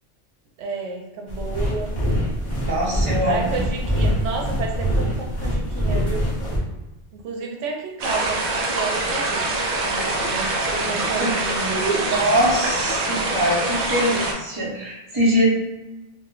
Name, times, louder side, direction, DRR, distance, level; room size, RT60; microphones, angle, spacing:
voice 1, 0.6-1.9 3.3-6.2 7.1-9.5 9.8-10.5 10.9-12.1, right 4 dB, 90° right, 1 dB, 1.0 m, -30 dB
sound 1, 1.3-6.6, equal, 25° left, 0.8 m, -24 dB
voice 2, 2.6-3.4 11.2-11.3 12.1-15.4, equal, 25° right, -5 dB, 0.7 m, -22 dB
sound 2, 8.0-14.3, right 2 dB, 60° right, 0.7 m, -24 dB
2.5 x 2.1 x 3.7 m, 1.1 s
omnidirectional pair, 1.2 m